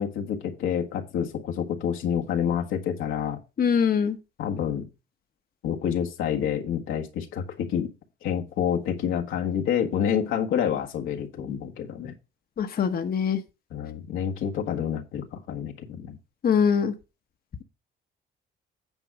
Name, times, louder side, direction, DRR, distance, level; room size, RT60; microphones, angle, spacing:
voice 1, 0.0-3.4 4.4-4.9 5.6-7.9 8.2-12.1 13.7-16.2, left 8 dB, 90° left, 2 dB, 1.6 m, -28 dB
voice 2, 3.6-4.2 12.6-13.4 16.4-16.9, left 7 dB, 50° left, 7 dB, 1.0 m, -23 dB
9.1 x 4.6 x 6.0 m, 0.28 s
cardioid pair, 90°, 20 cm